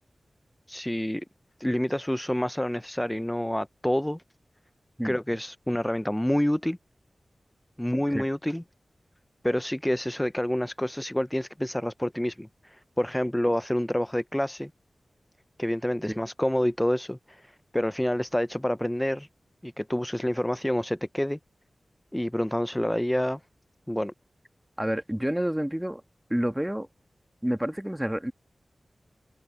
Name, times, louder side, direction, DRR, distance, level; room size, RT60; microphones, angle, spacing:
voice 1, 0.7-1.2 1.6-4.2 5.0-6.8 7.8-8.6 9.4-14.7 15.6-19.3 19.6-21.4 22.1-23.4 23.9-24.1, left 1 dB, 10° left, 0.3 m, -28 dB
voice 2, 24.8-26.0 26.3-26.9 27.4-28.3, equal, 10° right, 1.3 m, -29 dB
wide cardioid pair, 85°, 0 cm